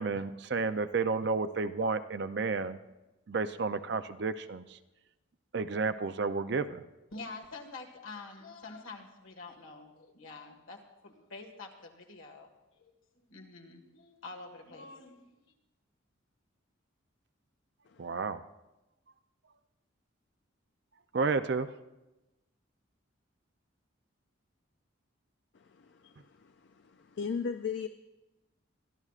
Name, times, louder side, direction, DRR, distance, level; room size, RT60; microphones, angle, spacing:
voice 1, 0.0-2.8 3.3-4.8 5.5-6.8 18.0-18.4 21.1-21.7, right 4 dB, 55° right, 11 dB, 0.5 m, -31 dB
voice 2, 7.1-12.5 12.8-12.9 13.3-15.4, left 3 dB, 80° left, 2 dB, 1.7 m, -47 dB
voice 3, 17.9-18.2 25.5-27.9, left 6 dB, 60° left, 9 dB, 0.4 m, -38 dB
23.0 x 13.0 x 2.5 m, 1.0 s
head